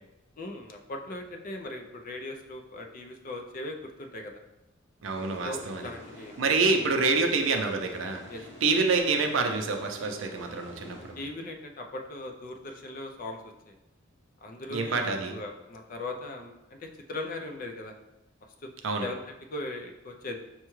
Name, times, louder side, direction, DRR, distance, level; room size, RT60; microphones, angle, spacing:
voice 1, 0.4-4.3 5.2-6.3 7.0-7.1 8.3-8.4 11.2-13.7 14.4-16.5 16.8-17.9 18.6-18.7 19.0-19.2 19.5-20.4, left 2 dB, 45° left, 3 dB, 0.4 m, -39 dB
sound 1, 5.0-11.7, left 1 dB, 60° left, 1.0 m, -48 dB
voice 2, 5.0-5.8 6.4-8.2 8.6-11.2 14.7-15.3 18.8-19.1, right 4 dB, 70° right, 4 dB, 0.5 m, -27 dB
5.6 x 2.3 x 3.0 m, 0.98 s
head